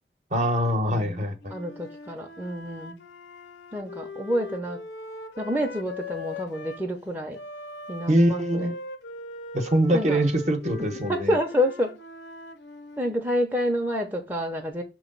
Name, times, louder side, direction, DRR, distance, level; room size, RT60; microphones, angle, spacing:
voice 1, 0.3-1.4 8.1-8.7 9.5-11.4, equal, 40° right, 1.0 m, -23 dB
voice 2, 0.9-3.0 3.7-4.8 5.4-7.4 7.9-8.7 9.9-10.2 11.1-12.0 13.0-14.8, equal, 10° right, 0.7 m, -28 dB
Wind instrument woodwind instrument, 1.4-6.8 7.3-13.2, left 2 dB, 80° left, 0.8 m, -40 dB
6.3 x 3.1 x 5.3 m
head